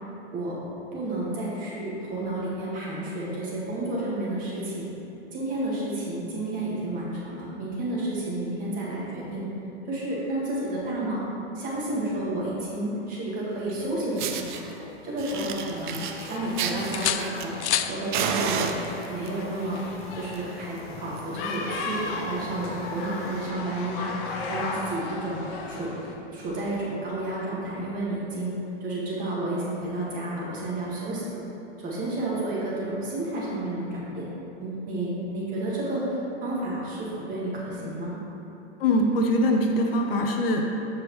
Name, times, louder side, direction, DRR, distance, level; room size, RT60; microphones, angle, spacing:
voice 1, 0.9-4.9 5.3-9.5 9.9-11.2 11.5-14.6 15.0-16.0 16.3-17.5 17.9-18.7 19.1-19.8 20.1-25.4 25.7-25.9 26.3-28.5 28.8-31.3 31.8-34.3 34.6-38.2, right 1 dB, 25° right, -6 dB, 1.9 m, -31 dB
Fire, 13.7-13.8 14.2-14.6 15.2-17.8 18.1-19.3 20.1-20.4 20.7-20.8 21.2-21.3 21.5-21.8 22.3-22.4 23.3-23.4, right 7 dB, 45° right, 0.6 m, -31 dB
sound 1, 13.8-15.3 15.7-16.5 16.9-18.0 19.9-20.1, left 10 dB, 75° left, 0.5 m, -32 dB
sound 2, 15.3-26.2, left 3 dB, 20° left, 0.5 m, -36 dB
voice 2, 38.8-40.6, left 1 dB, 55° left, 2 dB, 0.9 m, -22 dB
14.0 x 4.8 x 3.2 m, 2.9 s
hypercardioid pair, 150°, 35 cm